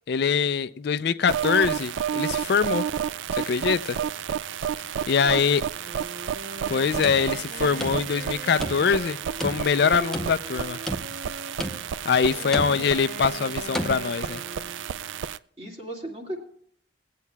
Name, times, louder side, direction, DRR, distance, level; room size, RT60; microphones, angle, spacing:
voice 1, 0.1-2.9 3.3-4.0 5.1-5.6 6.7-10.8 12.0-14.4, left 6 dB, 55° left, 0.4 m, -23 dB
sound 1, 1.3-15.4, right 9 dB, 75° right, 0.3 m, -31 dB
voice 2, 5.0-5.6 12.3-12.6 15.6-16.4, right 1 dB, 30° right, 2.1 m, -38 dB
Wind instrument woodwind instrument, 5.7-11.8 12.3-15.0, right 2 dB, 45° right, 0.8 m, -41 dB
sound 2, 7.0-8.3 8.6-9.1 9.4-10.5 10.9-11.3 11.6-12.1 12.5-13.0 13.7-14.0, equal, ahead, 0.7 m, -33 dB
22.0 x 8.3 x 2.3 m
head